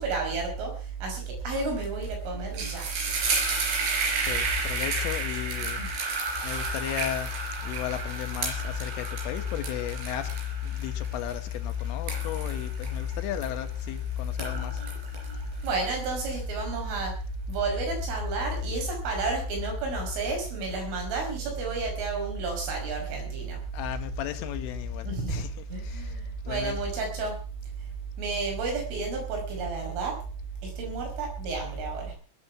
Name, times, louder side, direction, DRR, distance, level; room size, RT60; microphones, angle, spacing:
voice 1, 0.0-2.9 5.8-5.9 15.6-17.1 17.5-23.6 25.0-25.4 25.7-27.4 27.8-27.9 28.2-30.2 30.6-32.1, right 4 dB, 75° right, 8.0 m, -31 dB
sound 1, 1.8-2.1 2.3-13.9 14.2-16.2, right 4 dB, 50° right, 5.5 m, -32 dB
voice 2, 4.3-5.8 6.4-7.3 7.6-10.3 10.6-14.8 23.7-25.5 25.9-26.0 26.5-26.8, left 11 dB, 80° left, 3.9 m, -32 dB
20.0 x 9.3 x 6.0 m
omnidirectional pair, 5.7 m